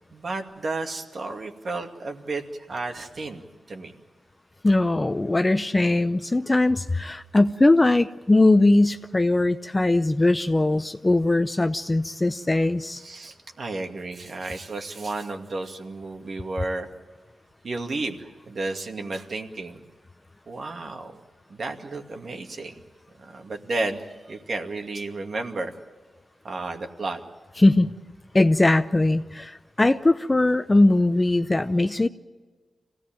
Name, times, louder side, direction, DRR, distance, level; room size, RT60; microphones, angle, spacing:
voice 1, 0.1-3.9 12.9-16.9 17.6-19.8 20.5-21.2 21.5-22.7 23.2-25.7 26.4-27.2, right 3 dB, 60° right, 4 dB, 2.3 m, -32 dB
voice 2, 4.6-13.0 27.6-27.9 28.3-32.1, left 2 dB, 20° left, 8 dB, 0.7 m, -20 dB
26.0 x 17.5 x 9.1 m, 1.4 s
wide cardioid pair, 85°, 0 cm